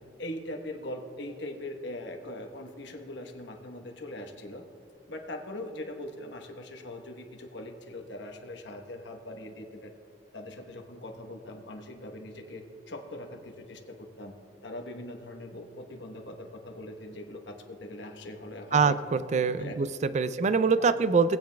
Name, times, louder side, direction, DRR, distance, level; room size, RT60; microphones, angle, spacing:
voice 1, 0.2-4.6 5.1-9.9 10.3-14.3 14.6-18.9 19.6-19.8 20.3-20.4 20.8-20.9, left 1 dB, 80° left, 4 dB, 1.1 m, -41 dB
voice 2, 18.7-21.4, right 5 dB, 40° right, 13 dB, 0.4 m, -24 dB
18.5 x 8.9 x 2.3 m, 2.6 s
head